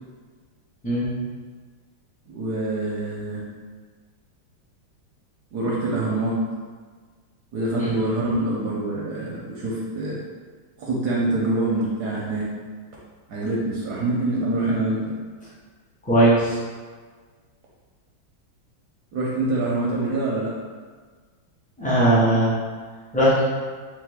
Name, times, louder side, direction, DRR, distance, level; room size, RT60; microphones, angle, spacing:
voice 1, 2.3-3.4 5.5-6.4 7.5-10.2 10.8-12.5 13.3-15.1 19.1-20.5, right 2 dB, 70° right, -5 dB, 1.0 m, -25 dB
voice 2, 16.1-16.6 21.8-22.5 23.1-23.4, right 1 dB, 10° left, -10 dB, 0.4 m, -19 dB
3.4 x 3.2 x 3.5 m, 1.5 s
omnidirectional pair, 2.2 m